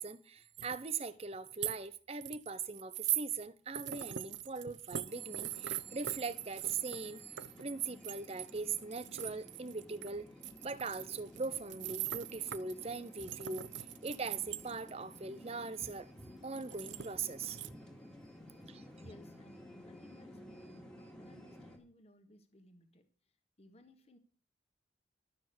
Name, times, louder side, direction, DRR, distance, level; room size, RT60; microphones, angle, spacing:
voice 1, 0.0-10.3 10.6-13.7 14.0-17.8 18.6-18.8, right 4 dB, 35° right, 0.7 m, -41 dB
sound 1, 0.6-0.9 1.3-1.8 2.2-3.3 3.7-10.1 10.4-14.9 16.5-17.7, right 12 dB, 80° right, 0.6 m, -41 dB
sound 2, 5.1-21.8, left 1 dB, 5° left, 2.0 m, -55 dB
voice 2, 19.0-23.1 23.6-24.2, left 1 dB, 35° left, 1.4 m, -61 dB
12.0 x 6.3 x 6.9 m
head